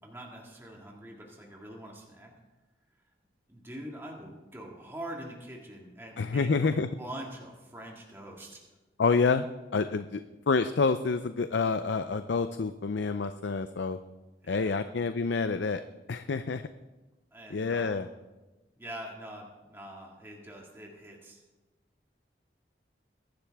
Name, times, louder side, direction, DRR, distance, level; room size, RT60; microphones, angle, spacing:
voice 1, 0.0-2.3 3.5-6.7 7.0-8.6 14.4-14.9 17.3-18.0 18.8-21.4, right 1 dB, 15° right, -2 dB, 2.0 m, -44 dB
voice 2, 6.2-6.9 9.0-9.5 9.7-10.2 10.5-14.0 14.5-15.8 16.1-16.6 17.5-18.1, left 4 dB, 80° left, 10 dB, 0.5 m, -28 dB
21.5 x 11.5 x 3.5 m, 1.1 s
head